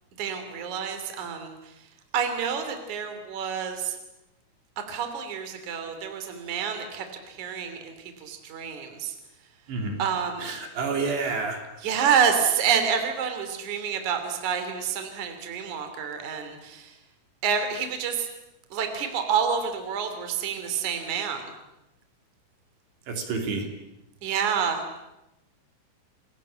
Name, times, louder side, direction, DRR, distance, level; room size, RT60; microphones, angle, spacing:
voice 1, 0.2-1.9 2.1-4.0 4.9-9.2 10.0-10.5 11.8-17.0 17.4-18.3 18.7-21.5 24.2-24.8, right 7 dB, 45° right, 7 dB, 3.9 m, -28 dB
voice 2, 9.7-10.0 10.4-11.6 23.1-23.7, right 4 dB, 65° right, 3 dB, 5.2 m, -29 dB
29.5 x 21.5 x 8.8 m, 0.92 s
omnidirectional pair, 5.5 m